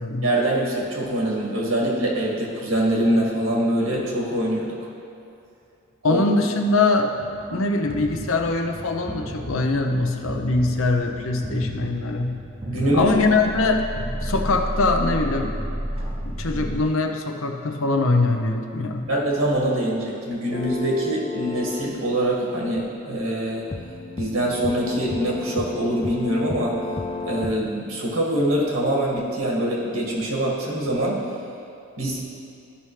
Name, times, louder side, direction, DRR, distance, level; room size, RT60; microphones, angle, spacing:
voice 1, 0.2-4.9 6.1-6.2 12.7-13.1 19.1-23.7 24.2-26.8 27.3-31.3 32.0-32.2, right 1 dB, 85° right, -3 dB, 1.9 m, -24 dB
voice 2, 6.0-7.2 7.5-12.4 12.9-13.8 14.2-15.6 16.2-19.0, left 3 dB, 80° left, 4 dB, 0.7 m, -22 dB
sound 1, 7.2-16.8, right 1 dB, 25° right, 0.6 m, -32 dB
sound 2, 20.5-27.7, left 3 dB, 25° left, 0.4 m, -33 dB
14.0 x 5.7 x 3.3 m, 2.7 s
head